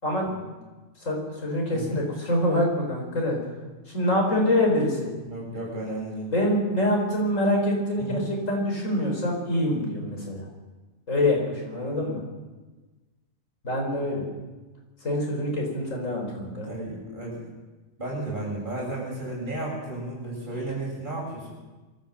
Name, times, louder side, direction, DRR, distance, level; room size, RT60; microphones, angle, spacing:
voice 1, 1.0-3.4 3.9-5.1 6.3-10.5 11.1-12.2 13.6-14.2 15.0-16.7, left 1 dB, 70° left, 0 dB, 5.5 m, -25 dB
voice 2, 1.7-2.0 5.2-6.3 8.0-8.2 16.6-17.4 18.0-21.5, right 2 dB, 35° right, -4 dB, 7.4 m, -33 dB
23.5 x 14.0 x 7.8 m, 1.2 s
omnidirectional pair, 1.4 m